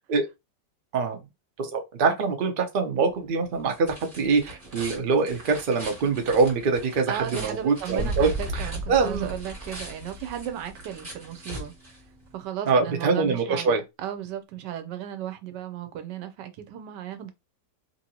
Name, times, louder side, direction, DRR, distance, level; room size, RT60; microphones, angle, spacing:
voice 1, 1.6-9.3 12.7-13.8, right 4 dB, 60° right, 0.5 m, -24 dB
sound 1, 3.0-12.5, right 1 dB, 30° right, 1.5 m, -43 dB
voice 2, 7.1-11.7 12.3-17.3, right 10 dB, 80° right, 1.2 m, -35 dB
sound 2, 8.0-10.9, right 1 dB, 25° left, 1.3 m, -33 dB
2.8 x 2.7 x 2.9 m
omnidirectional pair, 1.9 m